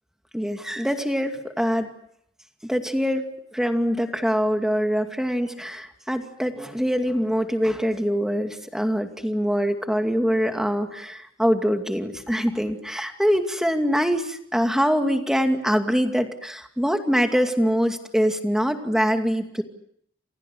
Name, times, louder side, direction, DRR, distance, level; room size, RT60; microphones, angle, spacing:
voice 1, 0.3-1.9 2.6-19.6, equal, 5° right, 5 dB, 2.4 m, -24 dB
30.0 x 27.5 x 6.4 m, 0.70 s
head